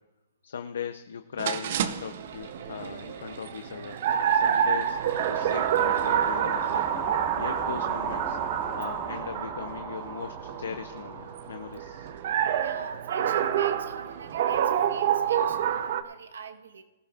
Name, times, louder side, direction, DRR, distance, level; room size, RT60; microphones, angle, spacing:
voice 1, 0.4-4.0 4.3-5.0 5.3-6.9 7.4-8.4 8.7-12.1, left 7 dB, 75° left, 8 dB, 0.6 m, -38 dB
sound 1, 1.4-16.0, right 9 dB, 50° right, 0.7 m, -28 dB
sound 2, 1.9-7.5, right 5 dB, 65° right, 1.6 m, -49 dB
sound 3, 4.6-12.9, right 7 dB, 30° right, 1.4 m, -34 dB
voice 2, 12.6-16.8, right 4 dB, 90° right, 6 dB, 1.2 m, -43 dB
19.5 x 15.0 x 2.5 m, 1.1 s
hypercardioid pair, 155°, 0 cm